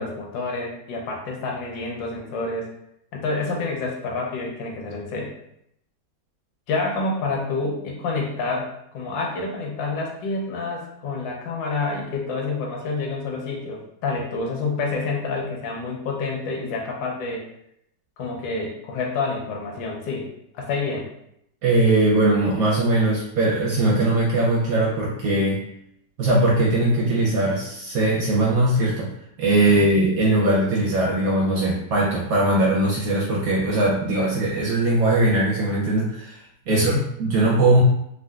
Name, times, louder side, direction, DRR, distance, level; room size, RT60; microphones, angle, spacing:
voice 1, 0.0-2.7 3.1-5.3 6.7-17.4 18.2-20.3 20.5-21.1 29.8-29.9 36.7-37.1, left 3 dB, 85° left, 0 dB, 1.4 m, -28 dB
voice 2, 21.6-25.6 26.2-29.1 29.4-36.4 36.7-37.8, right 2 dB, 65° right, -4 dB, 0.9 m, -20 dB
3.6 x 2.4 x 2.3 m, 0.75 s
omnidirectional pair, 2.0 m